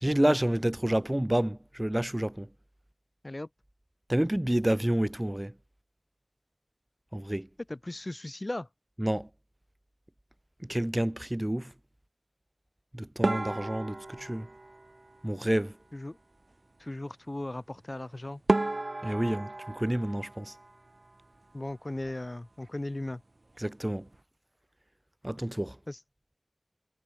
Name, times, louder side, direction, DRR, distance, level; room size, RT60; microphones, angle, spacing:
voice 1, 0.0-2.5 4.1-5.5 7.1-7.5 9.0-9.3 10.6-11.7 12.9-14.5 15.2-15.7 19.0-20.5 23.6-24.1 25.2-25.8, right 1 dB, 25° right, 0.7 m, -29 dB
voice 2, 7.7-8.7 15.9-16.2 16.8-18.4 21.5-23.2 25.9-26.0, left 1 dB, 50° left, 1.4 m, -37 dB
sound 1, 13.2-15.7 17.9-18.0 18.5-21.2 21.5-22.3 22.6-22.8 23.1-23.2 23.8-24.1, right 2 dB, 70° right, 2.7 m, -33 dB
wide cardioid pair, 40°, 0 cm